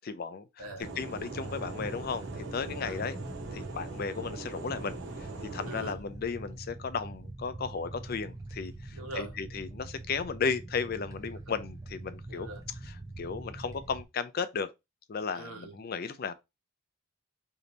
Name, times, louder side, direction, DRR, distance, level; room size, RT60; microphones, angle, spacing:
voice 1, 0.0-0.5 1.0-3.2 3.5-12.5 13.2-14.7 15.1-16.3, left 5 dB, 45° left, 0.4 m, -35 dB
sound 1, 0.6-14.0, right 2 dB, 15° right, 0.5 m, -44 dB
voice 2, 0.6-0.9 2.8-3.0 5.7-6.0 8.9-9.4 11.5-11.6 12.3-12.6 15.3-15.8, right 1 dB, 85° right, 1.3 m, -42 dB
sound 2, 0.8-5.9, right 2 dB, 55° right, 0.7 m, -41 dB
3.3 x 2.7 x 3.9 m
head